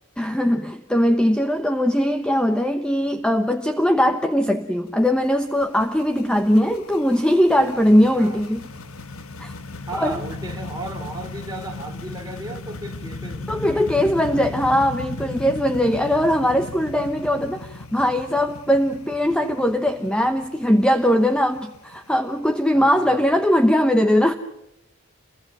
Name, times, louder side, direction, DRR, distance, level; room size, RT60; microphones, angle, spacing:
voice 1, 0.2-8.6 9.4-9.5 10.0-10.2 13.5-24.3, equal, 5° left, 0.9 m, -20 dB
sound 1, 4.9-23.6, left 2 dB, 75° left, 1.6 m, -37 dB
voice 2, 9.9-14.6 15.2-15.4 22.7-23.3, right 2 dB, 15° right, 3.0 m, -36 dB
29.0 x 23.0 x 6.1 m
head